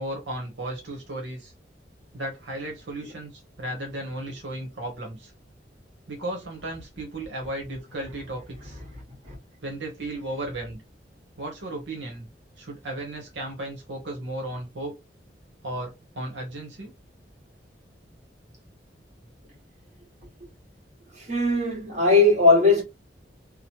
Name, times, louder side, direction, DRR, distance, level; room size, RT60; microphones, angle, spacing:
voice 1, 0.0-1.5 2.1-5.3 6.1-8.8 9.6-10.8 11.4-12.3 12.6-14.9 15.6-16.9, right 1 dB, 85° right, 0.9 m, -35 dB
voice 2, 21.1-22.8, left 3 dB, 40° right, 1.4 m, -19 dB
3.0 x 2.0 x 2.9 m
head